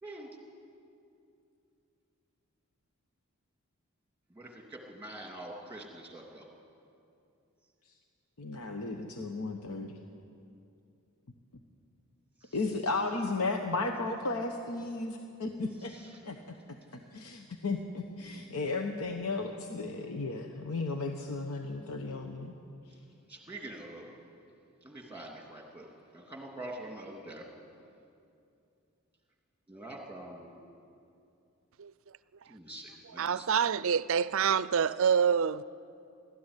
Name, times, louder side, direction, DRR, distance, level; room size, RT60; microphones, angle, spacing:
voice 1, 4.4-6.4 15.9-16.0 23.3-24.1 24.8-25.9 26.1-27.4 29.7-30.5 32.5-33.5, right 1 dB, 5° right, 2.8 m, -45 dB
voice 2, 8.4-10.0 12.5-15.9 16.2-16.5 17.1-22.5, left 3 dB, 80° left, 1.0 m, -34 dB
voice 3, 33.0-35.6, right 7 dB, 60° right, 0.4 m, -27 dB
19.0 x 13.5 x 9.9 m
head